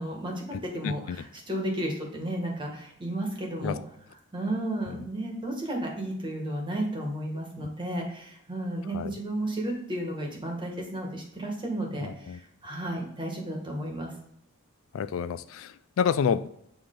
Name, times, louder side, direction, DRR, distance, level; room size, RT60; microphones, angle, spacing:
voice 1, 0.0-3.8 4.3-14.1, right 1 dB, 25° right, 0 dB, 1.5 m, -33 dB
voice 2, 0.5-1.2 3.6-3.8 4.9-5.0 8.9-9.1 12.0-12.4 14.9-16.5, left 7 dB, 70° left, 13 dB, 0.3 m, -29 dB
8.9 x 3.2 x 3.7 m, 0.73 s
head